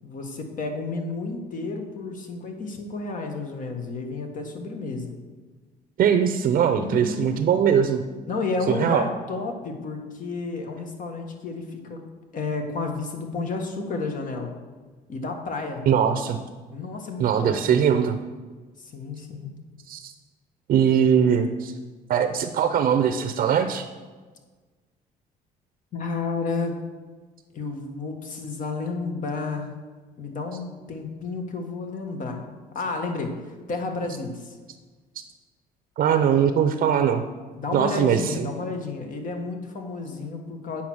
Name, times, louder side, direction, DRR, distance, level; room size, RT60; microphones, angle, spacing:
voice 1, 0.0-5.1 6.8-7.4 8.3-12.1 12.3-14.5 15.1-15.9 16.7-17.8 18.8-19.6 25.9-26.8 27.5-29.7 30.2-34.6 37.6-40.8, left 3 dB, 50° left, 4 dB, 1.7 m, -31 dB
voice 2, 6.0-8.0 8.7-9.1 15.9-16.4 17.2-18.2 19.9-20.1 20.7-21.7 22.1-23.9 36.0-37.2 37.7-38.5, right 8 dB, 55° right, 8 dB, 0.7 m, -21 dB
8.6 x 5.9 x 6.3 m, 1.4 s
cardioid pair, 110°, 17 cm